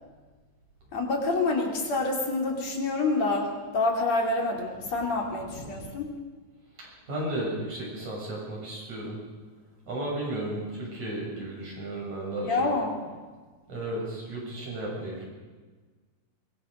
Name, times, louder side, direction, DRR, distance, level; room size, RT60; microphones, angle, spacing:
voice 1, 0.9-6.1 12.4-13.0, left 3 dB, 65° left, 1 dB, 4.2 m, -27 dB
voice 2, 5.4-5.9 7.1-9.2 9.9-12.8 13.7-15.3, right 1 dB, 75° right, -3 dB, 8.7 m, -34 dB
23.5 x 23.0 x 5.2 m, 1.4 s
omnidirectional pair, 3.3 m